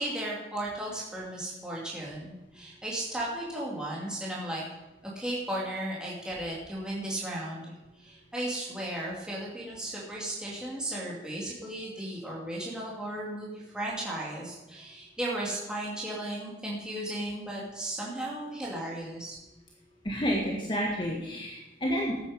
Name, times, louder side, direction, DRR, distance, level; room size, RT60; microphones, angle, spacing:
voice 1, 0.0-4.6 5.0-19.4, right 1 dB, 5° right, -6 dB, 2.5 m, -35 dB
voice 2, 20.0-22.2, equal, 25° left, -3 dB, 1.6 m, -30 dB
13.0 x 9.1 x 5.2 m, 0.98 s
head